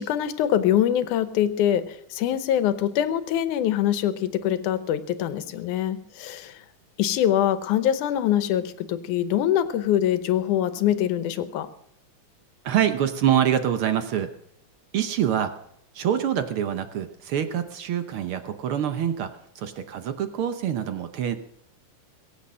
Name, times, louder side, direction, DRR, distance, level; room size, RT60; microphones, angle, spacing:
voice 1, 0.0-1.8 2.1-6.5 7.0-11.7, left 11 dB, 90° left, 11 dB, 2.4 m, -24 dB
voice 2, 12.6-14.3 14.9-15.5 15.9-21.4, right 9 dB, 65° right, 9 dB, 1.4 m, -25 dB
22.5 x 8.5 x 6.2 m, 0.71 s
omnidirectional pair, 3.4 m